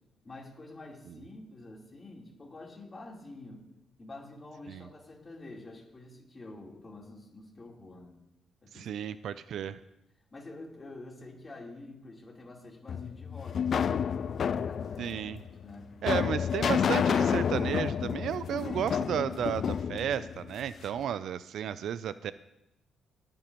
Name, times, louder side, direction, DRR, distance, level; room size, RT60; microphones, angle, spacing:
voice 1, 0.2-3.6 4.0-8.2 8.6-8.9 9.5-9.7 10.3-15.1 15.6-15.9, left 2 dB, 30° left, -2 dB, 3.7 m, -47 dB
voice 2, 8.7-9.8 15.0-15.4 16.0-22.3, right 9 dB, 70° right, 15 dB, 0.4 m, -33 dB
sound 1, 12.9-21.0, left 7 dB, 55° left, 0.3 m, -30 dB
20.0 x 8.9 x 3.1 m, 0.88 s
cardioid pair, 90°, 0 cm